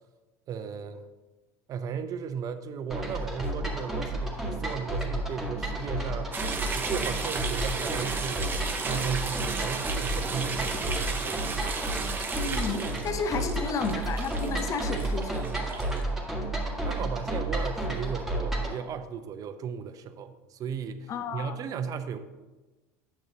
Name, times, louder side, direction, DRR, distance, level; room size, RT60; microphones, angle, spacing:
voice 1, 0.5-1.1 1.7-6.4 6.7-8.5 8.8-11.7 16.8-22.2, right 7 dB, 45° right, 10 dB, 0.7 m, -36 dB
sound 1, 2.9-18.8, right 1 dB, 5° right, 1.8 m, -32 dB
sound 2, 6.3-16.0, right 4 dB, 25° right, 0.9 m, -34 dB
voice 2, 12.4-15.4 21.1-21.5, left 5 dB, 40° left, 8 dB, 0.7 m, -32 dB
9.2 x 7.2 x 2.8 m, 1.2 s
hypercardioid pair, 90°, 9 cm